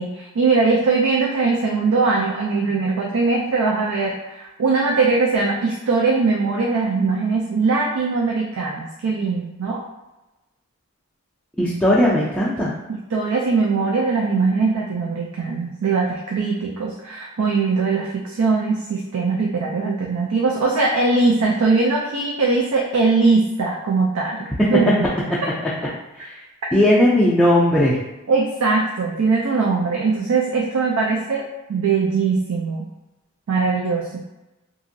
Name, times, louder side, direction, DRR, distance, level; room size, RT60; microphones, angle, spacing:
voice 1, 0.0-9.8 13.1-25.1 28.3-31.4 31.7-32.8 33.5-34.2, right 4 dB, 85° right, -1 dB, 0.4 m, -21 dB
voice 2, 11.6-12.7 26.2-26.3 26.7-28.0, left 1 dB, 5° left, -9 dB, 0.3 m, -17 dB
2.8 x 2.5 x 2.6 m, 1.0 s
head